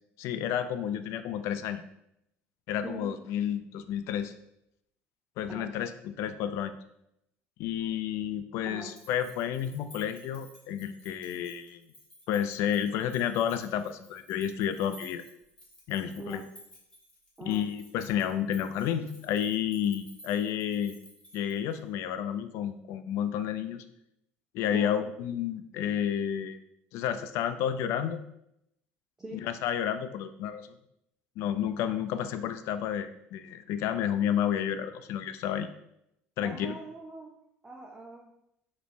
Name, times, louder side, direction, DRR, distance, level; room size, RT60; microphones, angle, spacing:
voice 1, 0.2-1.8 2.7-4.3 5.4-6.7 7.6-11.8 12.3-15.2 15.9-16.4 17.4-20.9 21.3-23.8 24.5-26.6 26.9-28.2 29.3-30.7 31.4-35.7 36.4-36.7, left 9 dB, 65° left, 10 dB, 0.3 m, -31 dB
sound 1, 8.8-21.9, equal, 20° left, 1.4 m, -54 dB
voice 2, 36.4-37.3 37.6-38.3, right 2 dB, 15° right, -1 dB, 0.4 m, -42 dB
5.1 x 3.1 x 2.6 m, 0.79 s
cardioid pair, 155°, 5 cm